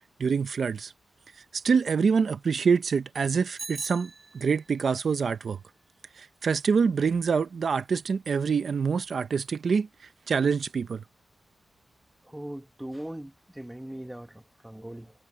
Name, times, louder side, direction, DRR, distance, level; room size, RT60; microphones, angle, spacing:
voice 1, 0.2-0.9 1.5-5.6 6.2-9.9 10.3-11.0, right 5 dB, 65° right, 0.8 m, -26 dB
Bicycle bell, 3.6-4.8, right 3 dB, 40° right, 6.4 m, -41 dB
voice 2, 12.2-15.1, right 1 dB, 5° right, 1.3 m, -40 dB
wide cardioid pair, 120°, 0 cm